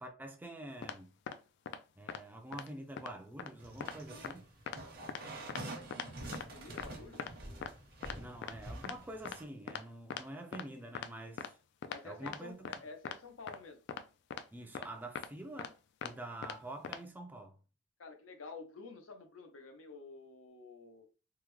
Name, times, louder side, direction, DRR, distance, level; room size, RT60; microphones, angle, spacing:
voice 1, 0.0-1.1 2.0-4.5 8.2-11.6 12.0-12.7 14.5-15.8 16.0-17.6, right 1 dB, 10° right, 0.4 m, -47 dB
sound 1, 0.8-0.9 1.3-1.4 1.7-1.8 2.1-2.2 2.5-2.7 3.0-3.1 3.4-3.5 3.8-3.9 4.2-4.3 4.7-4.8 5.1-5.2 5.5-5.6 5.9-6.1 6.3-6.4 6.8-6.9 7.2-7.3 7.6-7.7 8.0-8.2 8.4-8.5 8.8-8.9 9.2-9.4 9.7-9.8 10.1-10.2 10.5-10.6 10.9-11.1 11.4-11.5 11.8-12.0 12.3-12.4 12.6-12.8 13.0-13.2 13.5-13.6 13.9-14.0 14.3-14.4 14.7-14.9 15.1-15.3 15.6-15.7 16.0-16.1 16.4-16.6 16.8-17.0, left 7 dB, 60° left, 0.3 m, -40 dB
sound 2, 3.6-9.4, right 2 dB, 50° right, 0.9 m, -47 dB
voice 2, 6.0-7.3 11.9-13.8 18.0-21.1, left 3 dB, 85° left, 0.6 m, -50 dB
3.5 x 2.1 x 3.0 m
head